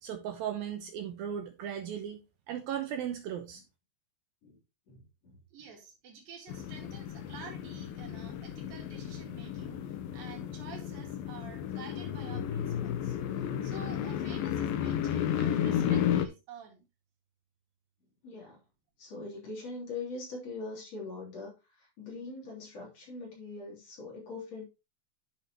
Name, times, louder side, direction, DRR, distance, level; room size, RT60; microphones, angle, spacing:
voice 1, 0.0-3.6, right 9 dB, 80° right, 2.1 m, -37 dB
voice 2, 4.9-5.4 18.2-18.6 19.0-24.6, left 3 dB, 40° left, 4.0 m, -42 dB
voice 3, 5.5-16.9, right 6 dB, 60° right, 3.6 m, -50 dB
sound 1, 6.5-16.3, left 9 dB, 75° left, 2.2 m, -33 dB
10.0 x 6.6 x 3.0 m
omnidirectional pair, 5.1 m